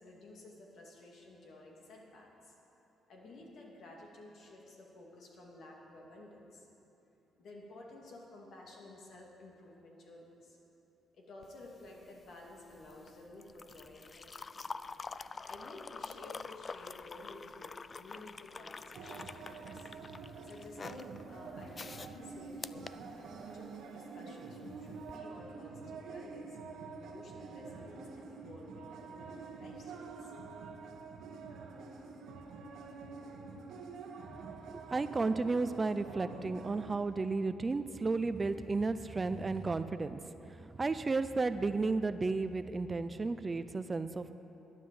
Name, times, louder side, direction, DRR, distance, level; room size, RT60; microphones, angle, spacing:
voice 1, 0.0-2.5 3.1-6.7 7.4-10.6 11.1-14.8 15.4-17.7 18.0-19.9 20.4-26.6 27.0-30.3, left 2 dB, 65° left, -1 dB, 2.6 m, -53 dB
sound 1, 11.4-23.7 25.0-25.2, left 4 dB, 35° left, 0.3 m, -47 dB
sound 2, 18.9-37.0, right 4 dB, 75° right, 1.2 m, -47 dB
voice 2, 34.7-44.3, right 3 dB, 25° right, 11 dB, 0.5 m, -33 dB
11.5 x 9.9 x 7.7 m, 3.0 s
cardioid pair, 90°, 0 cm